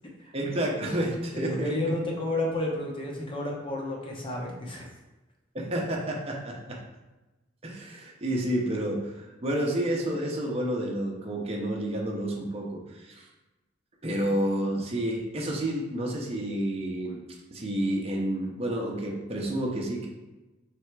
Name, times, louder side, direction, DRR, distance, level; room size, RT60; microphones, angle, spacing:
voice 1, 0.3-1.7 5.5-6.8 7.6-13.3 14.0-17.2 17.5-20.1, right 1 dB, 30° right, -2 dB, 0.7 m, -30 dB
voice 2, 1.3-4.9, left 1 dB, 25° left, -2 dB, 0.9 m, -31 dB
3.4 x 3.3 x 4.6 m, 1.1 s
head